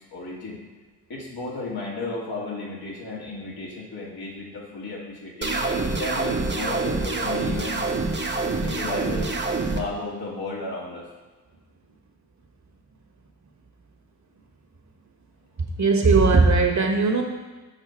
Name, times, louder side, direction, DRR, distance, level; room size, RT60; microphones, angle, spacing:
voice 1, 0.1-0.6 1.1-5.5 6.0-7.8 8.6-9.3 9.7-11.1, left 2 dB, 75° left, -4 dB, 2.0 m, -33 dB
sound 1, 5.4-9.8, right 3 dB, 30° right, 0.9 m, -26 dB
voice 2, 15.6-17.2, right 4 dB, 50° right, 2 dB, 1.4 m, -18 dB
6.6 x 5.7 x 4.4 m, 1.3 s
cardioid pair, 50°, 38 cm